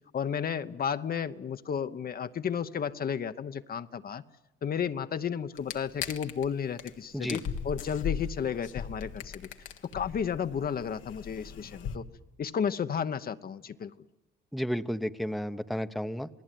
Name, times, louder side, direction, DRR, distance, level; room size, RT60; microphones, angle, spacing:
voice 1, 0.1-4.2 4.6-9.5 9.9-12.1 12.4-13.9, left 7 dB, 50° left, 10 dB, 0.9 m, -32 dB
sound 1, 5.6-6.5 6.8-6.9 7.2-12.0, left 7 dB, 90° left, 1.6 m, -38 dB
voice 2, 14.5-16.3, equal, ahead, 9 dB, 0.9 m, -32 dB
28.0 x 19.0 x 9.2 m, 0.93 s
cardioid pair, 90°, 20 cm